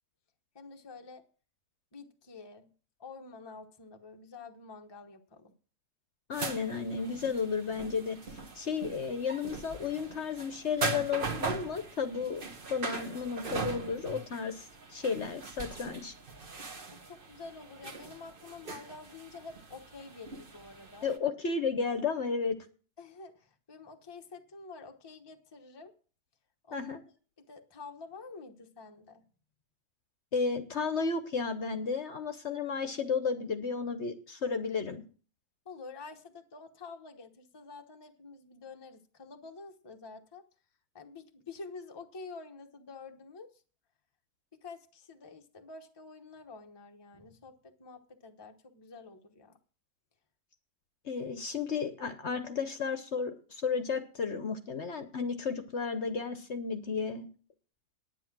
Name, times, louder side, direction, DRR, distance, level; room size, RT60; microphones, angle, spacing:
voice 1, 0.5-1.2 1.9-2.7 3.0-5.5 16.9-21.1 23.0-25.9 26.6-26.9 27.4-29.2 35.6-40.5 40.9-43.6 44.5-49.6, left 4 dB, 20° left, 4 dB, 0.8 m, -48 dB
voice 2, 6.3-12.4 12.7-16.1 21.0-22.6 26.7-27.0 30.3-35.0 51.0-57.3, left 5 dB, 50° left, 9 dB, 1.1 m, -33 dB
sound 1, 6.3-21.2, right 4 dB, 35° right, 1.2 m, -40 dB
10.0 x 9.5 x 6.0 m, 0.40 s
omnidirectional pair, 1.7 m